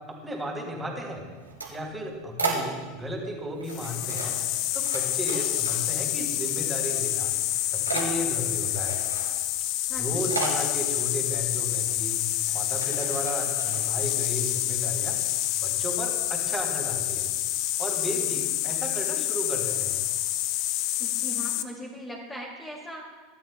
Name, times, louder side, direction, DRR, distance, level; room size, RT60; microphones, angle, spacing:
voice 1, 0.1-1.2 1.7-4.4 4.7-7.4 7.7-9.0 10.0-12.2 12.5-15.2 15.6-17.3 17.8-20.0, equal, 10° right, 0 dB, 3.5 m, -34 dB
sound 1, 1.2-3.1 3.6-5.0 5.3-6.1 6.4-7.0 7.3-14.0, right 4 dB, 90° right, 2.6 m, -35 dB
sound 2, 3.7-21.6, left 14 dB, 50° left, 0.6 m, -28 dB
voice 2, 9.9-10.3 21.0-23.0, equal, 15° left, -2 dB, 2.3 m, -39 dB
23.0 x 12.5 x 2.2 m, 1.4 s
figure-of-eight pair, 80°, 0 cm